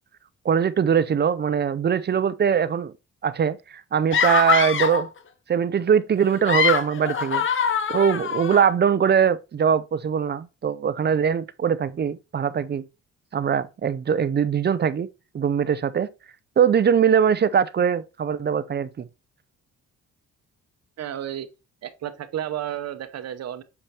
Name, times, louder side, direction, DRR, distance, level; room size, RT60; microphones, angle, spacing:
voice 1, 0.4-2.9 3.2-5.1 5.5-7.4 7.9-12.9 13.3-15.1 15.3-16.1 16.6-19.0, right 7 dB, 35° right, 0.6 m, -22 dB
sound 1, 4.1-5.1 6.3-8.7, left 6 dB, 40° left, 0.7 m, -23 dB
voice 2, 21.0-21.5 21.8-23.6, right 11 dB, 60° right, 0.9 m, -32 dB
7.0 x 5.1 x 2.9 m
cardioid pair, 90°, 30 cm